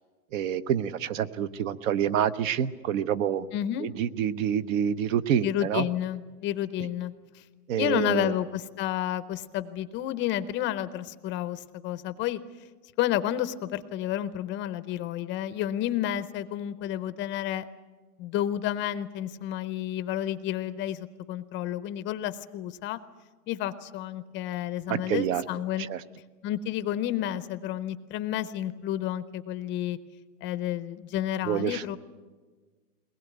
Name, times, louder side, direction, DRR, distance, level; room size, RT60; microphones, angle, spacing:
voice 1, 0.3-3.5 3.8-5.9 7.7-8.3 24.9-25.4 25.8-26.0 31.5-32.0, right 9 dB, 60° right, 14 dB, 1.0 m, -27 dB
voice 2, 3.5-3.9 5.4-7.4 7.8-12.4 13.0-17.7 18.2-23.0 23.5-25.9 26.4-30.0 30.4-32.0, left 12 dB, 25° left, 13 dB, 0.6 m, -31 dB
22.0 x 20.0 x 9.2 m, 1.4 s
supercardioid pair, 145°, 45 cm